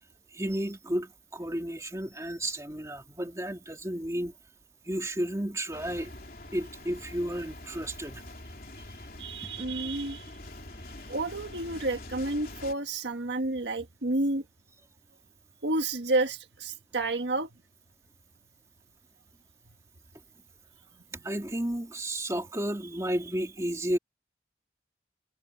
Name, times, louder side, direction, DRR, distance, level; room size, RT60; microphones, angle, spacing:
voice 1, 0.3-4.3 4.8-6.1 6.5-8.2 21.2-24.0, right 1 dB, 15° right, 2.5 m, -32 dB
sound 1, 5.7-12.7, left 2 dB, 55° left, 3.6 m, -45 dB
voice 2, 9.2-10.3 11.1-14.4 15.6-17.5, right 2 dB, 85° right, 1.5 m, -30 dB
head